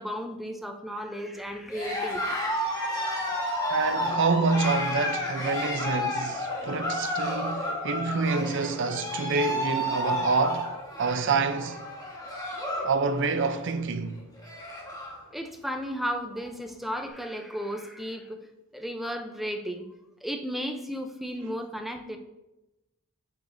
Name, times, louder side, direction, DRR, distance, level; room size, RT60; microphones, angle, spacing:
voice 1, 0.0-2.4 15.3-18.5 18.7-19.9 20.2-22.2, equal, ahead, 0.6 m, -34 dB
Cheering, 1.7-12.9 13.2-13.7 14.1-14.2 14.4-15.2, left 1 dB, 15° left, 1.4 m, -31 dB
voice 2, 3.7-11.8 12.8-14.2, right 4 dB, 55° right, 0.5 m, -27 dB
8.0 x 6.6 x 2.6 m
head